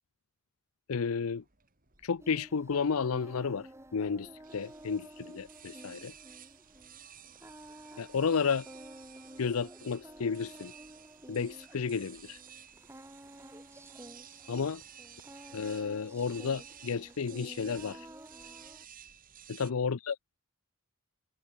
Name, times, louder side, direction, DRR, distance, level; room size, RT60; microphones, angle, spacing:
voice 1, 0.9-1.4 2.0-6.1 8.0-8.7 9.4-10.7 11.3-12.4 14.5-14.8 15.5-18.1 19.5-20.2, left 5 dB, 85° left, 0.6 m, -32 dB
sound 1, 0.9-19.7, right 9 dB, 40° right, 4.2 m, -54 dB
Singing, 2.2-18.8, right 1 dB, 15° right, 4.6 m, -51 dB
open air
head